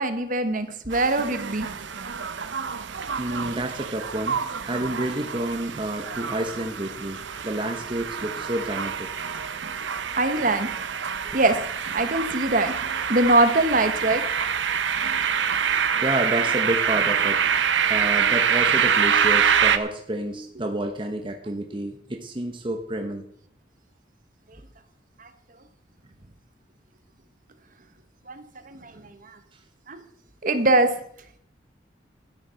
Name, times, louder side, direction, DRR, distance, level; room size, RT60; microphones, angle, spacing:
voice 1, 0.0-1.7 10.1-10.7 11.3-11.6 11.9-12.7 13.1-14.2 25.2-25.3 28.3-28.9 29.9-30.0 30.4-30.9, right 2 dB, 45° right, 9 dB, 1.2 m, -22 dB
sound 1, 0.9-19.8, right 7 dB, 75° right, 0.9 m, -26 dB
voice 2, 3.2-9.1 11.2-11.4 16.0-17.4 17.9-23.2, right 1 dB, 25° right, 3 dB, 1.0 m, -29 dB
13.0 x 9.8 x 5.7 m, 0.68 s
head